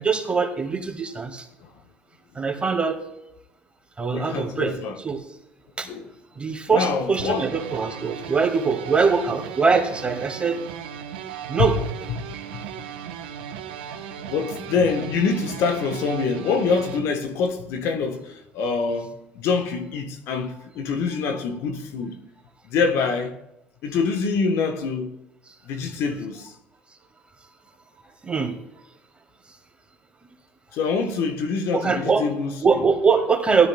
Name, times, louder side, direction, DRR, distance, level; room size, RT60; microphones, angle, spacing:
voice 1, 0.0-1.5 2.3-3.0 4.0-5.2 5.8-5.9 6.4-10.6 11.5-11.8 28.2-28.6 31.7-32.3 32.6-33.7, right 5 dB, 25° right, 2.1 m, -22 dB
voice 2, 4.1-5.0 5.8-6.1 6.7-7.5 12.5-12.6 14.3-22.2 22.6-23.3 23.8-25.2 25.6-26.5 30.7-32.8, left 5 dB, 70° left, 1.2 m, -25 dB
sound 1, 7.2-17.0, right 9 dB, 85° right, 1.0 m, -36 dB
16.5 x 13.0 x 2.3 m
hypercardioid pair, 65°, 5 cm